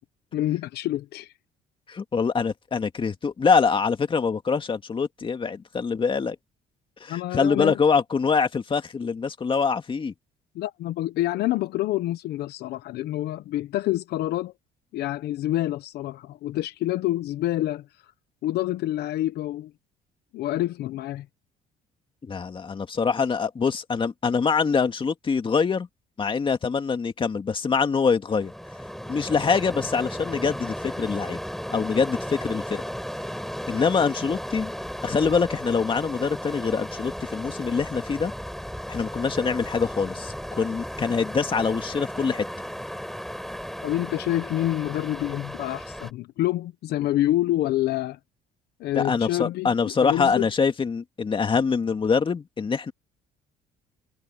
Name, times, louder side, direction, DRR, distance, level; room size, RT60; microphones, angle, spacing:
voice 1, 0.3-1.3 7.1-7.8 10.5-14.5 14.9-17.9 18.4-19.7 20.3-21.3 43.8-48.2 48.8-50.5, left 14 dB, 75° left, 0.9 m, -27 dB
voice 2, 1.9-6.4 7.0-10.1 22.2-25.9 26.2-28.5 29.1-31.4 31.7-32.8 33.7-34.7 35.0-38.3 38.9-42.4 48.9-52.9, left 5 dB, 30° left, 2.2 m, -24 dB
sound 1, 28.3-46.1, equal, ahead, 5.4 m, -35 dB
cardioid pair, 110°, 17 cm